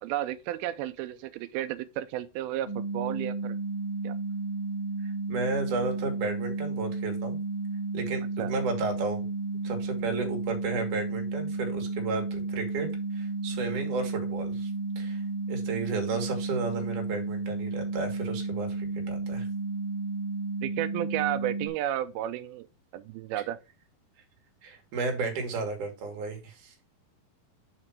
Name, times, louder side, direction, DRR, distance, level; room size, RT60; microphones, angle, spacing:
voice 1, 0.0-3.6 4.0-4.2 8.4-8.5 20.6-22.7 22.9-23.6, right 13 dB, 90° right, 2.4 m, -32 dB
sound 1, 2.7-21.7, right 3 dB, 45° left, 2.2 m, -33 dB
voice 2, 5.0-7.4 7.9-9.2 9.6-12.9 13.1-14.7 15.0-15.2 15.5-19.5 24.6-26.7, right 4 dB, 60° right, 3.0 m, -33 dB
5.8 x 4.9 x 5.7 m
omnidirectional pair, 4.2 m